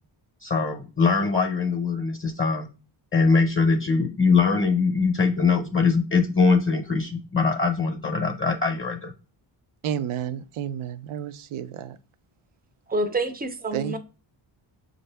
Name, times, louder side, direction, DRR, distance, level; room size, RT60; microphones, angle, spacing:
voice 1, 0.4-2.7 3.1-9.1, left 4 dB, 25° left, 0.6 m, -22 dB
voice 2, 9.8-12.0 13.7-14.0, right 9 dB, 75° right, 0.5 m, -31 dB
voice 3, 12.9-14.0, right 2 dB, 20° right, 0.4 m, -27 dB
6.1 x 2.6 x 3.3 m
wide cardioid pair, 115°, 50 cm